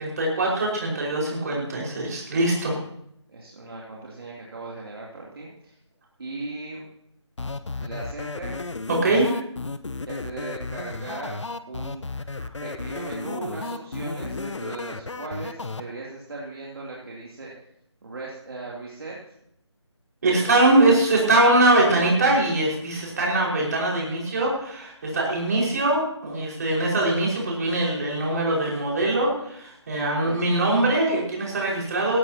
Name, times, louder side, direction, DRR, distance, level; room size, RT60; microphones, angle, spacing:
voice 1, 0.0-2.8 8.9-9.3 20.2-32.2, right 2 dB, 35° right, -2 dB, 5.2 m, -22 dB
voice 2, 3.3-5.8 6.2-6.8 7.8-8.6 9.2-9.4 10.0-11.4 11.7-12.1 12.6-17.5 18.0-19.2 20.3-21.0 25.1-25.3 30.2-30.4, right 3 dB, 50° right, -4 dB, 3.1 m, -37 dB
sound 1, 7.4-15.8, left 3 dB, 75° left, 1.0 m, -33 dB
16.5 x 16.0 x 2.9 m, 0.75 s
figure-of-eight pair, 160°, 16 cm